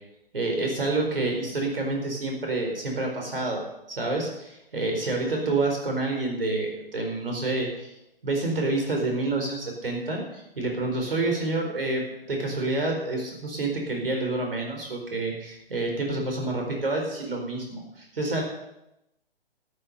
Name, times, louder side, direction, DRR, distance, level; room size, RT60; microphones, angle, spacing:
voice 1, 0.3-3.6 3.9-7.9 8.2-18.4, right 2 dB, 65° right, 2 dB, 4.5 m, -28 dB
13.0 x 8.7 x 6.7 m, 0.88 s
figure-of-eight pair, 130°, 30 cm